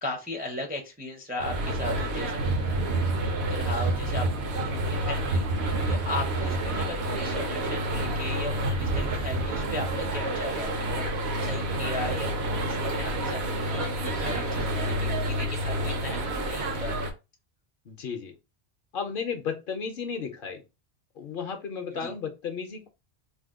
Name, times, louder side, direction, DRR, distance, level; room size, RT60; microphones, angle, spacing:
voice 1, 0.0-2.4 3.5-12.3 12.6-17.0 22.0-22.1, left 1 dB, 15° right, 1 dB, 0.4 m, -37 dB
sound 1, 1.4-17.1, right 1 dB, 75° right, 0.9 m, -28 dB
voice 2, 17.9-18.4 18.9-20.6 21.2-22.9, left 6 dB, 60° left, 6 dB, 0.7 m, -34 dB
2.7 x 2.2 x 3.5 m, 0.27 s
omnidirectional pair, 1.1 m